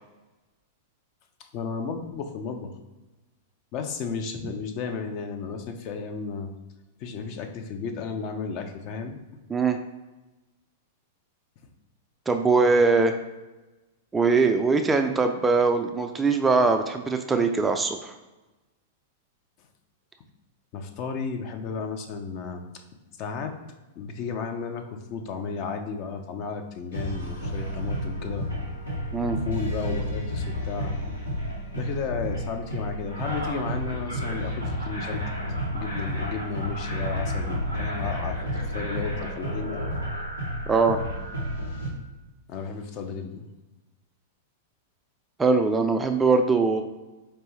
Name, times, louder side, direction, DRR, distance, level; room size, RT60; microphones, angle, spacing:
voice 1, 1.5-2.7 3.7-6.5 7.0-9.2 20.7-22.6 23.2-23.5 24.0-28.5 29.4-30.9 31.7-35.2 35.7-39.8 42.5-43.5, left 5 dB, 40° left, 5 dB, 0.5 m, -33 dB
voice 2, 12.3-13.1 14.1-18.1 29.1-29.4 40.7-41.0 45.4-46.8, right 4 dB, 15° right, 6 dB, 0.3 m, -21 dB
sound 1, 26.9-41.9, equal, 90° left, 1.1 m, -31 dB
4.5 x 2.6 x 3.1 m, 1.1 s
figure-of-eight pair, 100°, 0 cm